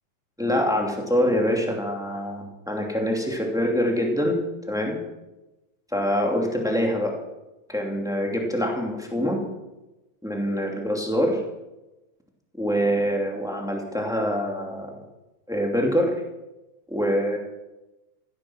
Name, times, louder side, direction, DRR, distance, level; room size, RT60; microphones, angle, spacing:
voice 1, 0.4-4.4 4.7-5.0 5.9-7.1 7.7-9.4 10.2-11.4 12.6-14.9 15.5-16.1 16.9-17.4, equal, ahead, 0 dB, 2.1 m, -25 dB
15.5 x 13.5 x 6.3 m, 1.0 s
omnidirectional pair, 4.1 m